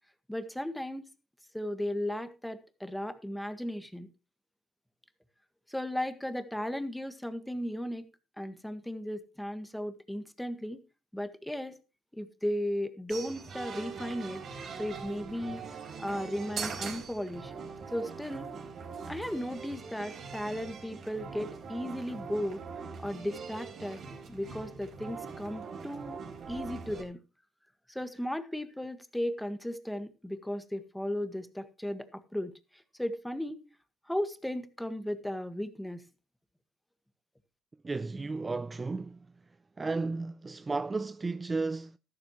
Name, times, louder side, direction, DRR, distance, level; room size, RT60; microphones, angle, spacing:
voice 1, 0.3-1.0 1.5-4.1 5.7-8.0 8.4-10.8 11.1-11.8 12.1-14.4 14.8-17.5 17.9-18.5 19.1-22.6 23.0-24.0 24.3-26.2 26.5-27.2 27.9-33.6 34.1-36.0, equal, 5° left, 1.7 m, -36 dB
sound 1, 13.1-27.0, right 5 dB, 55° right, 4.6 m, -42 dB
voice 2, 37.8-39.3 39.8-42.0, right 3 dB, 20° right, 0.5 m, -33 dB
13.5 x 12.5 x 3.1 m
cardioid pair, 100°, 0 cm